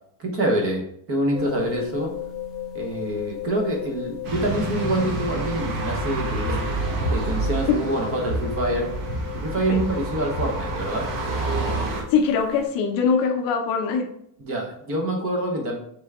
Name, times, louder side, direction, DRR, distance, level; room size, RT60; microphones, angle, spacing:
voice 1, 0.2-2.1 2.7-6.8 7.1-8.9 9.3-11.1 14.4-15.8, right 1 dB, 30° right, 1 dB, 0.7 m, -26 dB
sound 1, 1.3-12.7, left 11 dB, ahead, 0.4 m, -36 dB
sound 2, 4.2-12.0, right 2 dB, 60° right, 1.4 m, -28 dB
voice 2, 12.1-14.1, left 5 dB, 45° left, 3 dB, 0.6 m, -22 dB
4.4 x 3.3 x 3.5 m, 0.70 s
cardioid pair, 165°, 49 cm